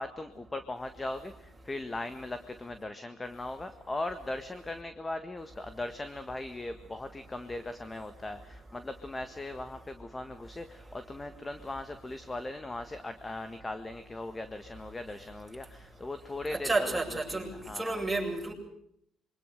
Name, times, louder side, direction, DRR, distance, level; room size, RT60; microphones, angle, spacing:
voice 1, 0.0-18.0, left 2 dB, 15° left, 1.6 m, -39 dB
voice 2, 16.5-18.5, right 2 dB, 5° right, 7.9 m, -31 dB
26.5 x 24.0 x 6.7 m
cardioid pair, 120°, 0 cm